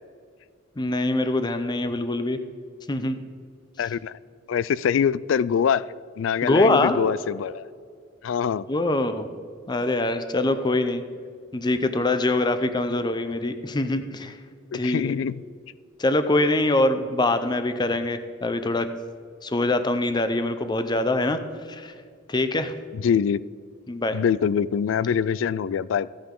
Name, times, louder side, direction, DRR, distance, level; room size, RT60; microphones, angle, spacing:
voice 1, 0.8-2.4 2.9-3.2 6.4-7.0 8.7-9.3 9.7-11.0 11.5-14.4 14.7-15.1 16.0-18.9 19.4-21.4 21.7-21.9 22.3-22.7 23.9-24.2, left 2 dB, 20° left, 9 dB, 0.6 m, -23 dB
voice 2, 3.8-4.1 4.5-5.9 6.2-7.7 8.2-8.7 14.7-15.4 22.9-23.4 24.1-26.1, left 7 dB, 80° left, 19 dB, 0.3 m, -24 dB
15.5 x 8.8 x 3.7 m, 2.1 s
head